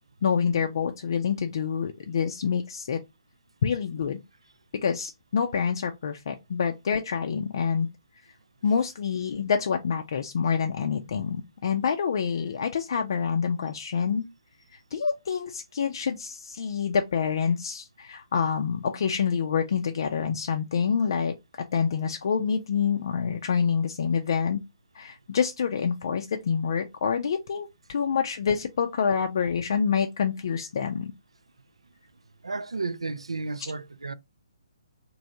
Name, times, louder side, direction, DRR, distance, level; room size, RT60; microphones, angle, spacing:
voice 1, 0.2-3.0 3.6-4.2 4.8-7.9 8.6-14.3 14.7-21.3 21.7-24.6 24.9-31.1, left 6 dB, 50° left, 0.4 m, -27 dB
voice 2, 32.4-34.1, right 3 dB, 80° right, 0.3 m, -32 dB
3.2 x 2.6 x 2.6 m
figure-of-eight pair, 135°, 3 cm